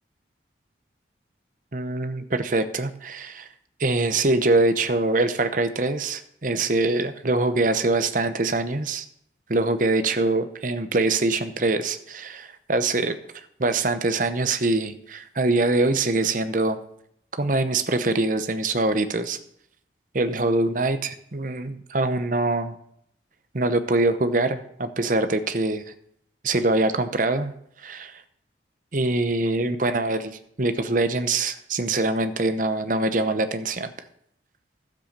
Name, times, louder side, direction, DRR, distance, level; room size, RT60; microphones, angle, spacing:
voice 1, 1.7-3.5 3.8-9.0 9.5-16.8 17.4-19.4 20.1-22.8 23.5-25.8 26.4-28.2 28.9-33.9, right 2 dB, 45° right, 10 dB, 0.9 m, -24 dB
12.0 x 7.7 x 6.7 m, 0.71 s
head